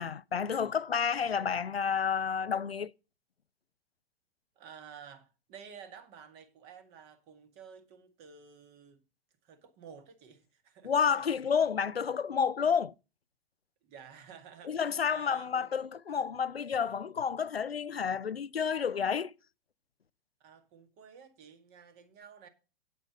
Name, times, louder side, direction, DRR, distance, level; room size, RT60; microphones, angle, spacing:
voice 1, 0.0-2.9 10.8-12.9 14.6-19.3, left 7 dB, 85° left, 0.5 m, -30 dB
voice 2, 4.6-9.0 9.4-11.2 13.8-15.7 20.4-22.5, right 7 dB, 35° right, 1.9 m, -52 dB
8.7 x 8.3 x 5.1 m
figure-of-eight pair, 105°, 30 cm